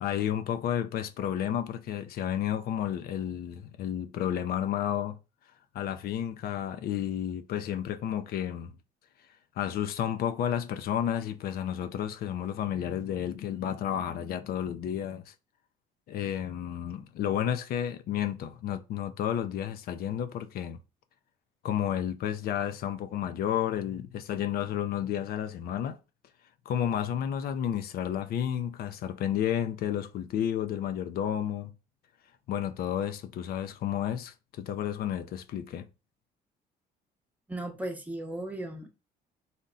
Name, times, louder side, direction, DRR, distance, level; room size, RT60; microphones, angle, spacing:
voice 1, 0.0-5.2 5.7-8.7 9.6-15.3 16.1-20.8 21.6-26.0 26.7-31.7 32.5-35.9, left 10 dB, 65° left, 0.5 m, -31 dB
voice 2, 37.5-38.9, right 1 dB, 10° right, 0.8 m, -36 dB
4.1 x 2.2 x 3.7 m
cardioid pair, 110°, 17 cm